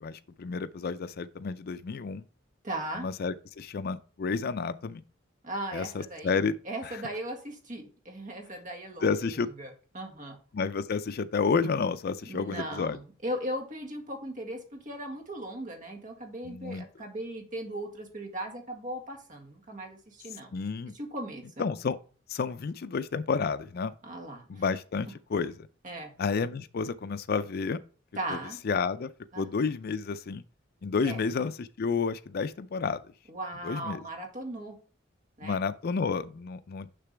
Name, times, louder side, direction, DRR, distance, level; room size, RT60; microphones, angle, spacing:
voice 1, 0.0-2.2 3.0-5.0 5.7-6.5 6.8-7.0 9.0-9.5 10.5-13.0 16.4-16.8 20.5-20.9 21.6-22.0 22.3-23.9 24.5-25.5 26.2-27.8 28.3-28.4 28.6-29.1 29.4-30.4 30.8-33.0 33.6-34.0 35.4-36.9, left 5 dB, 55° left, 0.4 m, -30 dB
voice 2, 2.6-3.1 5.4-6.4 6.7-9.2 9.6-10.4 12.3-20.5 20.9-21.4 24.0-24.7 25.8-26.1 28.2-28.6 29.3-29.5 31.0-31.3 33.3-34.8 35.4-35.6, right 1 dB, 40° right, 1.8 m, -38 dB
6.7 x 5.9 x 3.4 m
head